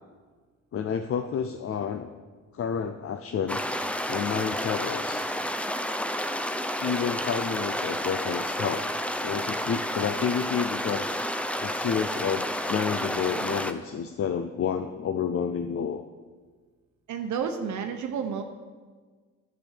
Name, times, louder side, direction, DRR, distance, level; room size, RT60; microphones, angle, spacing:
voice 1, 0.7-2.1 2.5-3.6 4.1-5.3 6.8-8.9 9.2-11.2 11.6-16.0, left 7 dB, 50° left, 8 dB, 0.6 m, -30 dB
sound 1, 3.5-13.7, equal, 5° left, 0.6 m, -30 dB
voice 2, 17.1-18.4, right 7 dB, 70° right, 5 dB, 0.9 m, -30 dB
8.9 x 7.0 x 8.2 m, 1.5 s
cardioid pair, 90°, 30 cm